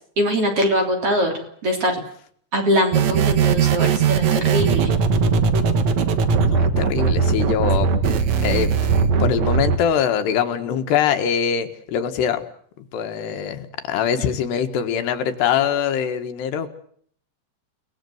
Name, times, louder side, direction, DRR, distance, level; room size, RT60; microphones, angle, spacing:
voice 1, 0.2-1.3 1.6-1.9 2.5-4.9, equal, 35° right, 3 dB, 3.9 m, -22 dB
sound 1, 2.9-9.8, right 5 dB, 55° right, 2.1 m, -19 dB
voice 2, 6.4-7.9 8.4-8.8 9.2-12.4 12.9-16.7, left 8 dB, 75° left, 7 dB, 3.6 m, -23 dB
29.5 x 19.0 x 7.9 m, 0.63 s
omnidirectional pair, 4.9 m